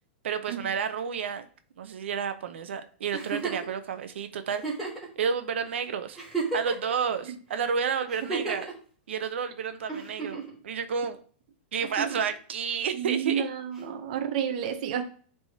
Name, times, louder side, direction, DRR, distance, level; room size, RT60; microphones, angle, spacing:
voice 1, 0.2-1.4 1.8-4.8 5.2-6.2 6.5-8.7 9.1-11.2 11.7-13.5, right 6 dB, 85° right, 0.7 m, -30 dB
Giggle, 3.1-3.7 4.6-5.1 5.7-5.8 6.1-6.9 8.1-8.7 9.9-10.5 11.8-12.3 13.8-13.9, right 4 dB, ahead, 2.0 m, -32 dB
voice 2, 12.9-15.0, right 8 dB, 40° right, 0.7 m, -30 dB
10.0 x 3.5 x 2.8 m
supercardioid pair, 175°, 6 cm